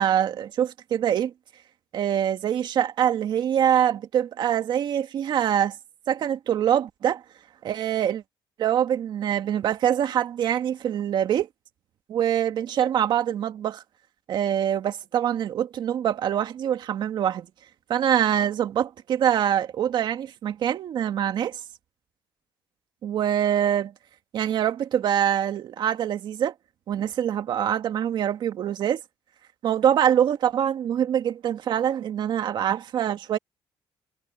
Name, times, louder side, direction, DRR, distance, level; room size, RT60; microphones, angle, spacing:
voice 1, 0.0-1.3 1.9-5.8 6.1-7.2 7.6-8.2 8.6-11.5 12.1-13.8 14.3-17.5 17.9-21.6 23.0-23.9 24.3-26.5 26.9-29.0 29.6-33.4, right 10 dB, 60° right, 2.0 m, -24 dB
cardioid pair, 130°, 9 cm